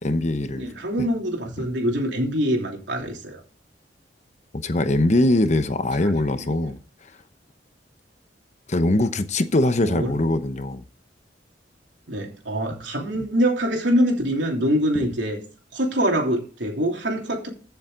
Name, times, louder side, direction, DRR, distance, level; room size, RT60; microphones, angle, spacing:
voice 1, 0.0-0.7 1.0-1.1 1.6-1.7 4.6-6.8 8.7-10.8, left 1 dB, 40° left, 0.9 m, -22 dB
voice 2, 0.6-3.4 6.4-6.6 9.8-10.1 12.1-15.4 15.7-17.5, equal, 85° right, 3.2 m, -24 dB
15.5 x 7.1 x 3.8 m
head